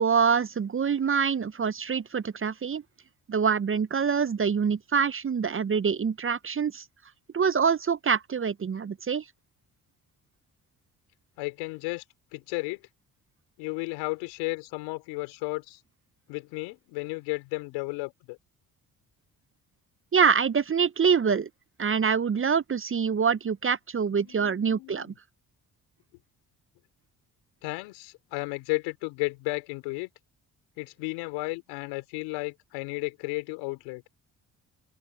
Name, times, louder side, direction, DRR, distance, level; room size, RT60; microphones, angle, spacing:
voice 1, 0.0-2.8 3.3-6.8 7.3-9.2 20.1-21.5 21.8-25.1, right 6 dB, 30° right, 0.7 m, -25 dB
voice 2, 11.4-12.0 12.3-12.8 13.6-15.8 16.3-18.4 24.1-25.1 27.6-30.1 30.8-34.0, left 25 dB, 90° left, 5.3 m, -33 dB
open air
hypercardioid pair, 50°, 44 cm